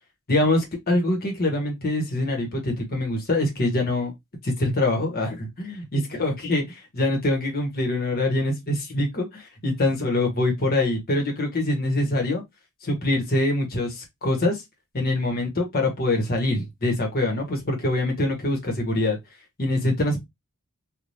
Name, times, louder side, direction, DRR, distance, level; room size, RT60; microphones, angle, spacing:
voice 1, 0.3-4.1 4.4-6.6 6.9-12.4 12.8-14.6 14.9-19.2 19.6-20.2, left 2 dB, 45° left, 1.3 m, -24 dB
3.3 x 2.6 x 2.7 m
head